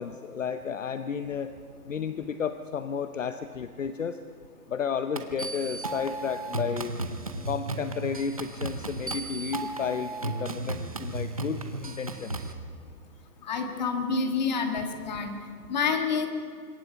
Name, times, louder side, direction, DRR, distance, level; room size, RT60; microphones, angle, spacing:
voice 1, 0.0-1.5 1.9-4.2 4.7-7.0 7.5-12.4, left 6 dB, 55° left, 10 dB, 0.9 m, -32 dB
electro loop, 5.2-12.5, right 2 dB, 25° right, 0.7 m, -34 dB
voice 2, 13.4-15.4 15.7-16.3, left 5 dB, 30° left, 5 dB, 1.9 m, -28 dB
25.5 x 22.0 x 5.8 m, 2.4 s
hypercardioid pair, 175°, 47 cm